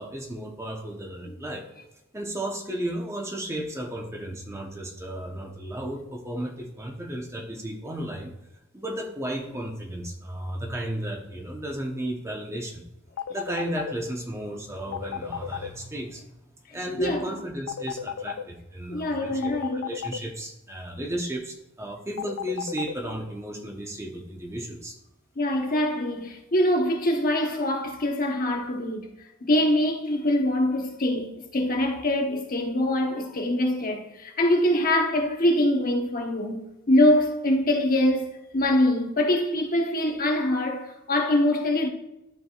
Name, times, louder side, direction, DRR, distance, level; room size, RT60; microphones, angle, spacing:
voice 1, 0.0-1.7 2.1-8.3 8.7-12.8 13.3-16.3 16.7-25.0, right 1 dB, 15° right, 1.0 m, -34 dB
digital phone ring bip, 13.2-13.9 14.9-15.7 17.7-18.4 19.4-20.2 22.2-22.9, left 8 dB, 70° left, 0.4 m, -32 dB
voice 2, 16.9-17.3 18.9-19.9 25.4-29.1 29.4-41.9, left 1 dB, 45° left, 1.2 m, -24 dB
12.5 x 4.9 x 2.4 m
head